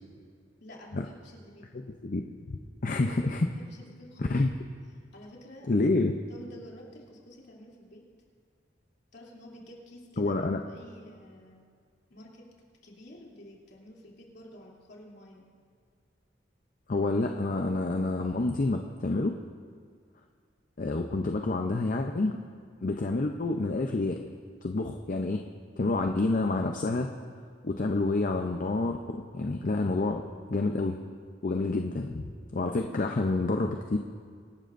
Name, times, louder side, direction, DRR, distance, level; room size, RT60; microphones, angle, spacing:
voice 1, 0.6-1.7 2.8-2.9 3.4-4.4 5.1-5.9 6.3-8.0 9.1-11.6 12.1-12.4 12.8-15.5, left 1 dB, 65° left, -3 dB, 2.9 m, -50 dB
voice 2, 2.0-3.5 4.2-4.5 5.7-6.1 10.2-10.6 16.9-19.3 20.8-22.4 22.8-24.2 24.6-25.4 25.8-27.1 27.6-30.2 30.5-31.0 31.4-34.0, left 2 dB, 45° left, 4 dB, 0.6 m, -28 dB
25.5 x 12.0 x 2.6 m, 2.1 s
head